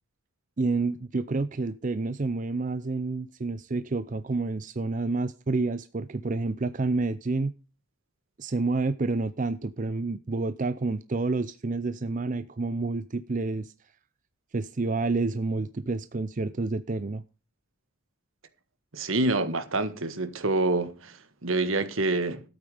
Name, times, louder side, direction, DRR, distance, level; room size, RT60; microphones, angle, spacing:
voice 1, 0.6-7.5 8.4-13.7 14.5-17.2, right 3 dB, 35° right, 0.5 m, -29 dB
voice 2, 18.9-22.4, right 2 dB, 70° right, 1.6 m, -27 dB
12.5 x 8.9 x 5.0 m
head